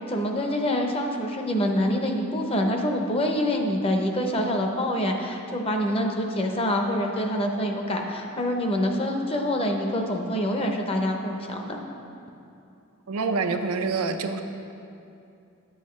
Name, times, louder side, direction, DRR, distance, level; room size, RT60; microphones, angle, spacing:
voice 1, 0.1-11.8, equal, 25° left, 3 dB, 0.7 m, -26 dB
voice 2, 13.1-14.4, right 4 dB, 90° right, 6 dB, 0.5 m, -26 dB
9.9 x 7.9 x 3.2 m, 2.7 s
head